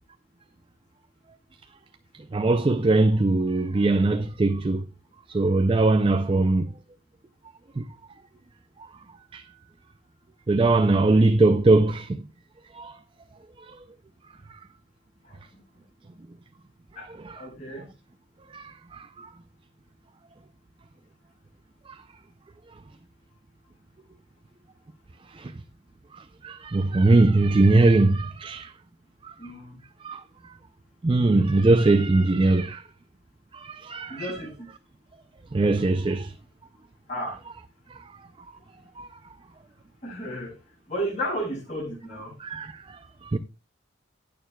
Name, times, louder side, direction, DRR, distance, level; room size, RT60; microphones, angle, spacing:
voice 1, 2.3-4.9 5.3-6.7 7.8-7.9 9.3-9.4 10.5-12.2 12.7-13.0 13.6-13.8 14.5-14.6 17.2-17.4 18.5-19.3 21.9-22.0 25.3-25.5 26.1-28.7 29.2-29.3 30.0-30.2 31.0-32.8 33.5-34.3 35.5-36.3 37.9-38.0 39.0-39.1 42.4-43.4, right 2 dB, 25° right, 0.4 m, -21 dB
voice 2, 17.3-17.8 29.4-29.7 34.1-34.5 37.1-37.4 40.0-40.5 40.9-42.3, equal, 40° left, 6.7 m, -32 dB
18.0 x 6.7 x 2.3 m
head